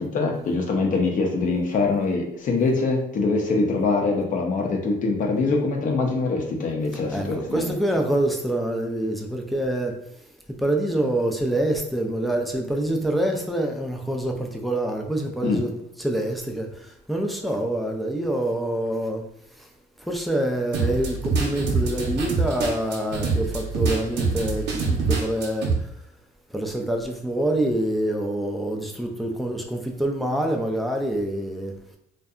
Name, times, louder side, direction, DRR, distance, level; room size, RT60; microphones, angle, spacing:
voice 1, 0.0-7.7 15.4-15.6, left 3 dB, 50° left, 0.6 m, -23 dB
voice 2, 7.1-10.0 10.5-15.7 16.0-19.2 19.6-19.7 20.0-25.7 26.5-31.7, right 1 dB, ahead, 0.4 m, -26 dB
sound 1, 20.7-25.7, right 4 dB, 75° right, 0.6 m, -25 dB
2.6 x 2.2 x 2.4 m
cardioid pair, 110°, 17 cm